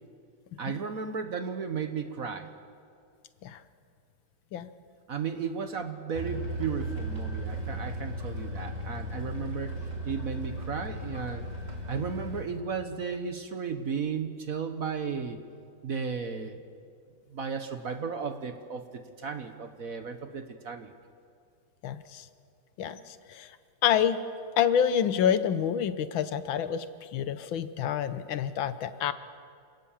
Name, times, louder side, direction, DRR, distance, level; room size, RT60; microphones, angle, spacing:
voice 1, 0.6-2.5 5.1-9.7 10.0-11.4 11.9-15.4 15.8-16.6 17.3-20.9, right 5 dB, 50° right, 7 dB, 1.3 m, -34 dB
sound 1, 6.1-12.4, right 1 dB, 20° right, 2.4 m, -36 dB
voice 2, 21.8-22.2 22.8-23.0 23.3-23.5 23.8-24.2 24.6-26.9 27.1-29.1, left 8 dB, 75° left, 12 dB, 1.6 m, -27 dB
28.0 x 17.5 x 7.2 m, 2.3 s
omnidirectional pair, 2.2 m